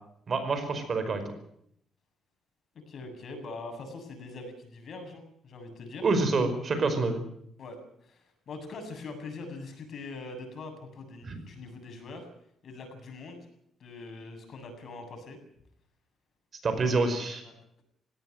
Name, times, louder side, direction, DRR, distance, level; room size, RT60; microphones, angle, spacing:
voice 1, 0.3-1.2 6.0-7.2 11.2-11.4 16.6-17.4, right 3 dB, 45° right, 9 dB, 5.2 m, -27 dB
voice 2, 2.9-6.1 7.6-7.8 8.0-12.3 12.6-13.4 13.8-15.4 17.4-17.5, left 3 dB, 55° left, 5 dB, 7.6 m, -42 dB
19.0 x 17.0 x 9.4 m, 0.71 s
cardioid pair, 90°, 0 cm